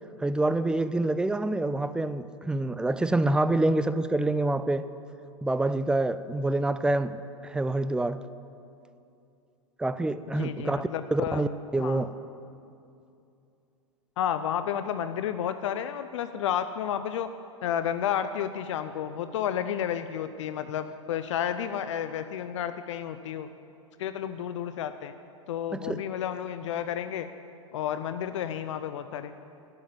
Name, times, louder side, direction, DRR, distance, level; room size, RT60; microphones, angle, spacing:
voice 1, 0.2-4.9 5.4-8.2 9.8-12.2 25.7-26.0, right 2 dB, 5° right, 0.4 m, -27 dB
voice 2, 10.3-11.4 11.8-12.0 14.2-17.3 17.6-23.5 24.0-25.1 25.5-27.3 27.7-29.3, left 9 dB, 70° left, 0.6 m, -31 dB
11.5 x 7.3 x 9.6 m
hypercardioid pair, 100°, 16 cm